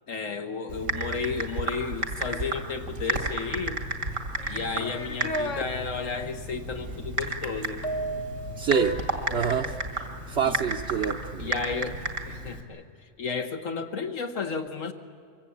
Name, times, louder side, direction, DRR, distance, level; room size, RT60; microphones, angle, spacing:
voice 1, 0.1-3.8 4.5-7.8 10.4-10.6 11.4-12.0 12.2-12.8 13.2-14.9, left 5 dB, 80° left, 5 dB, 1.5 m, -33 dB
Typing, 0.7-12.6, right 2 dB, 85° right, 2.4 m, -33 dB
sound 1, 4.4-5.7 7.8-9.5, right 1 dB, 35° left, 1.0 m, -33 dB
voice 2, 8.6-9.0 9.3-9.8 10.3-11.5, right 7 dB, 60° right, 2 dB, 1.0 m, -26 dB
24.5 x 23.0 x 8.5 m, 2.2 s
omnidirectional pair, 1.3 m